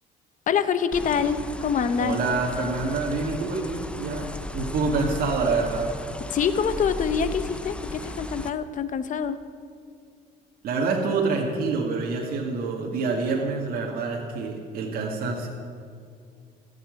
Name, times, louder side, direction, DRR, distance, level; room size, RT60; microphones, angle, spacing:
voice 1, 0.5-2.2 6.3-9.4, left 6 dB, 50° left, 11 dB, 0.9 m, -25 dB
sound 1, 0.9-8.5, left 2 dB, 5° left, 0.7 m, -36 dB
voice 2, 2.0-6.0 10.6-15.5, right 4 dB, 60° right, -1 dB, 2.1 m, -27 dB
14.5 x 7.4 x 10.0 m, 2.3 s
cardioid pair, 110°, 17 cm